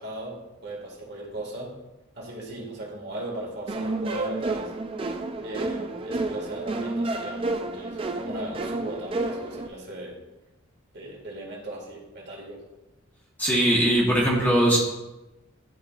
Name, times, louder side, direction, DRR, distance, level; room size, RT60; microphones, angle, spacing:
voice 1, 0.0-1.8 2.1-4.7 5.4-10.2 10.9-12.6, right 1 dB, 50° right, -3 dB, 1.9 m, -37 dB
sound 1, 3.7-9.7, right 2 dB, 25° right, 0.3 m, -30 dB
voice 2, 13.4-14.8, right 1 dB, 10° left, -5 dB, 1.1 m, -20 dB
11.0 x 4.7 x 2.4 m, 1.0 s
head